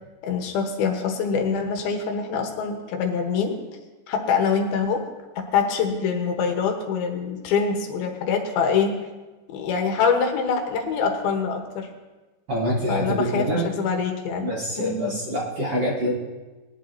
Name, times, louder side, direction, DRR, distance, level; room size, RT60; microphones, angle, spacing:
voice 1, 0.2-3.6 4.1-5.0 5.5-8.9 9.5-11.9 12.9-14.5 14.8-15.1, left 5 dB, 75° left, 3 dB, 3.0 m, -24 dB
voice 2, 12.5-13.7 14.4-16.1, equal, 50° right, -4 dB, 1.9 m, -25 dB
20.5 x 11.0 x 2.8 m, 1.2 s
omnidirectional pair, 4.5 m